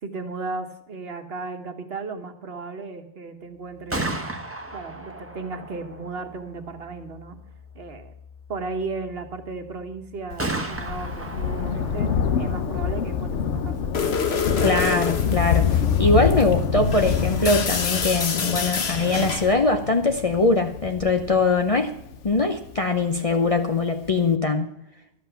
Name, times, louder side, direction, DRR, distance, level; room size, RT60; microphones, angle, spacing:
voice 1, 0.0-4.1 4.7-7.4 7.7-8.1 8.5-12.1 12.4-13.9, right 3 dB, 60° right, 6 dB, 1.4 m, -35 dB
Gunshot gunfire, 3.7-17.5, right 2 dB, 10° right, 1.1 m, -37 dB
Thunder, 10.3-23.2 24.1-24.2, left 7 dB, 85° left, 1.1 m, -26 dB
sound 1, 13.9-19.5, left 5 dB, 65° left, 1.3 m, -27 dB
voice 2, 14.6-21.9 22.2-24.7, left 3 dB, 35° left, 5 dB, 0.7 m, -22 dB
12.0 x 8.0 x 5.7 m, 0.84 s
omnidirectional pair, 1.2 m